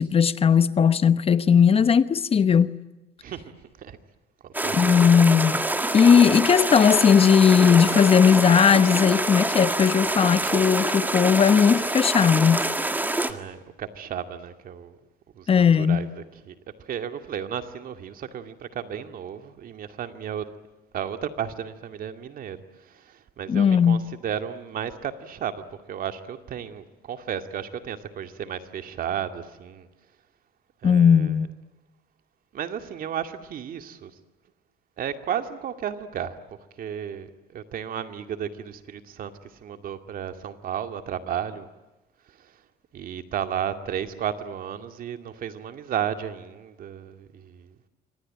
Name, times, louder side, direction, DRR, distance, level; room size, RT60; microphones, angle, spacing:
voice 1, 0.0-2.8 4.7-5.6 5.9-12.6 15.5-16.1 23.5-24.1 30.8-31.5, left 7 dB, 35° left, 0.9 m, -18 dB
voice 2, 3.2-4.0 4.4-5.0 13.3-15.0 15.3-20.5 20.9-22.6 22.9-29.9 30.8-31.4 32.5-34.1 35.0-36.4 36.8-39.3 39.6-41.7 42.9-47.7, right 9 dB, 55° right, 2.4 m, -33 dB
sound 1, 4.5-13.3, right 2 dB, 10° right, 1.9 m, -26 dB
26.5 x 25.5 x 8.8 m
cardioid pair, 110°, 17 cm